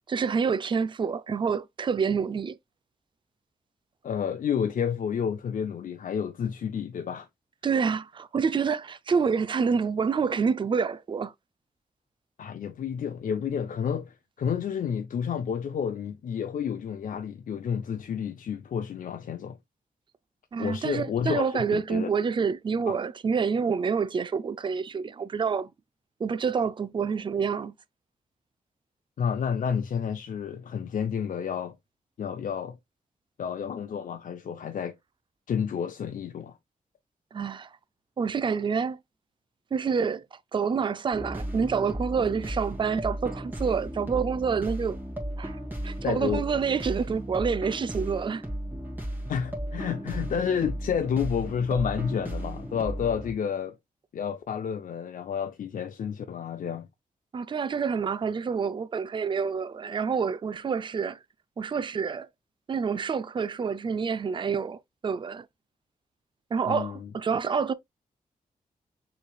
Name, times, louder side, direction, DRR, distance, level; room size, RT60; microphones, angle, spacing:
voice 1, 0.1-2.6 7.6-11.3 20.5-25.7 26.2-27.7 37.3-37.8 38.2-39.0 39.7-45.0 45.4-45.6 45.8-48.4 57.3-61.2 61.6-62.3 62.7-65.5 66.5-67.7, right 6 dB, 35° right, 0.4 m, -27 dB
voice 2, 4.0-7.3 12.4-19.6 20.6-22.1 22.9-23.0 29.2-31.7 32.2-32.8 33.4-35.0 35.5-36.6 46.0-46.4 49.3-53.8 54.1-56.9 66.7-67.1, left 7 dB, 65° left, 0.5 m, -30 dB
sound 1, 41.1-53.3, right 1 dB, 15° right, 1.9 m, -35 dB
6.7 x 3.2 x 2.2 m
wide cardioid pair, 110°, 15 cm